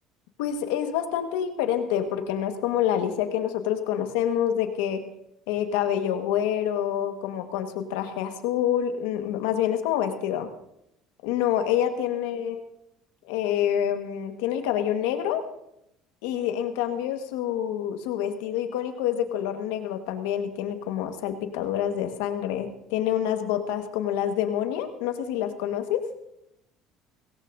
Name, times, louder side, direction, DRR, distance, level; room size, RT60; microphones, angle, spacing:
voice 1, 0.4-5.0 5.5-10.5 11.2-12.6 13.3-15.4 16.2-26.0, left 10 dB, 90° left, 6 dB, 1.5 m, -27 dB
18.5 x 17.5 x 2.7 m, 0.80 s
supercardioid pair, 95°, 0 cm